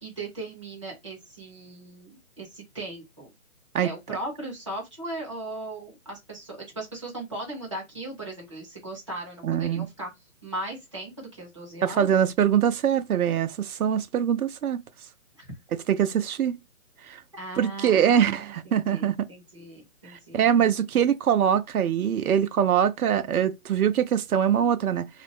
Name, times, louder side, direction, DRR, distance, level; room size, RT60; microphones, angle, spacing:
voice 1, 0.0-3.3 3.8-10.1 10.4-12.1 15.4-15.5 17.3-20.6, right 2 dB, 20° right, 0.6 m, -38 dB
voice 2, 9.4-9.9 11.8-14.8 15.9-16.6 17.1-17.2 17.6-19.2 20.1-25.1, right 9 dB, 85° right, 0.6 m, -23 dB
2.4 x 2.1 x 3.3 m
hypercardioid pair, 180°, 43 cm